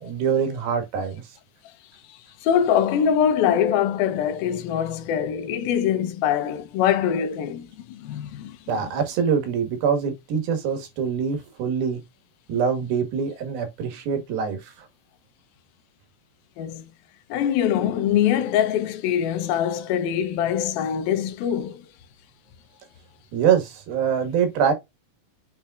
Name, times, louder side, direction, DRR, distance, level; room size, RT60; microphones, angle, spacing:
voice 1, 0.0-1.2 8.7-12.0 12.5-14.7 23.3-24.7, right 7 dB, 80° right, 3.7 m, -24 dB
voice 2, 2.1-8.9 16.6-16.9 17.3-21.8, left 9 dB, 80° left, 2.7 m, -23 dB
8.7 x 4.3 x 2.5 m
omnidirectional pair, 4.2 m